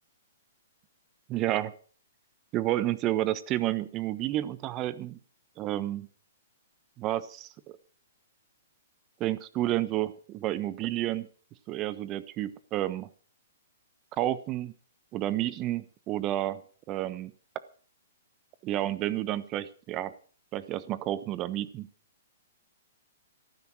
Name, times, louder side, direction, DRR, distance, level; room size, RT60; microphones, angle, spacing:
voice 1, 1.3-1.7 2.5-5.2 5.6-6.1 7.0-7.8 9.2-11.3 11.7-13.1 14.2-14.7 15.1-16.6 16.9-17.3 18.6-20.1 20.5-21.9, right 14 dB, 30° right, 16 dB, 1.1 m, -30 dB
14.0 x 12.0 x 6.3 m, 0.43 s
hypercardioid pair, 135°, 0 cm